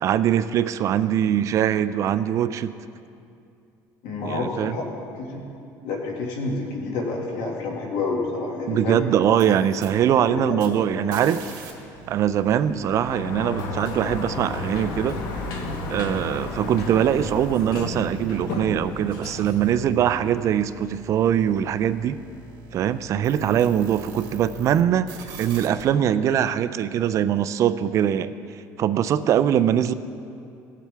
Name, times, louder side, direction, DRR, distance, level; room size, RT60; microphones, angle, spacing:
voice 1, 0.0-2.7 4.2-4.7 8.7-11.4 12.1-15.2 15.9-22.2 22.7-25.1 25.4-28.3 28.8-29.9, right 10 dB, 45° right, 13 dB, 0.3 m, -22 dB
voice 2, 4.0-4.8 5.1-5.4 5.8-9.0 9.4-9.6 10.3-11.2, left 3 dB, 85° left, -1 dB, 1.9 m, -29 dB
sound 1, 9.2-11.7 12.0-24.8 25.1-25.8, right 2 dB, 70° right, 2.0 m, -43 dB
Sliding door, 12.7-20.5, left 2 dB, 65° left, 1.2 m, -33 dB
18.0 x 7.4 x 3.4 m, 2.6 s
cardioid pair, 140°, 7 cm